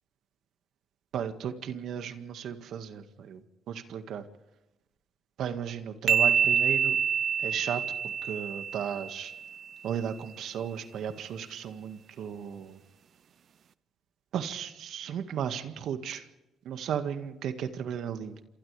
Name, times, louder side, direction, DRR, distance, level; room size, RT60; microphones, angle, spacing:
voice 1, 1.1-4.2 5.4-7.0 7.4-9.3 9.8-12.8 14.3-16.3 16.6-18.4, right 8 dB, 75° right, 8 dB, 1.9 m, -35 dB
sound 1, 6.1-9.6, right 7 dB, 60° right, 0.7 m, -27 dB
29.5 x 27.0 x 3.5 m, 0.99 s
cardioid pair, 90°, 0 cm